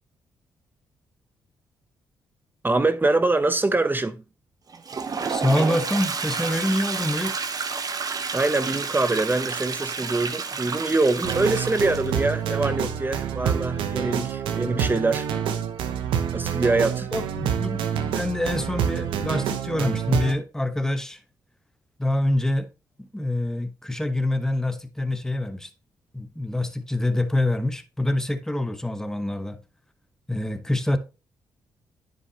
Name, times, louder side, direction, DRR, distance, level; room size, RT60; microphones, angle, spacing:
voice 1, 2.6-4.2 8.3-15.3 16.3-17.1, right 2 dB, 25° right, 0.7 m, -24 dB
Toilet flush, 4.7-12.3, right 5 dB, 45° right, 1.1 m, -30 dB
voice 2, 5.3-7.4 17.1-21.2 22.0-22.7 23.0-25.7 26.1-29.6 30.3-31.0, left 1 dB, 5° left, 1.1 m, -26 dB
sound 1, 11.2-20.3, right 8 dB, 85° right, 0.8 m, -27 dB
9.7 x 5.3 x 2.9 m
supercardioid pair, 55°, 9 cm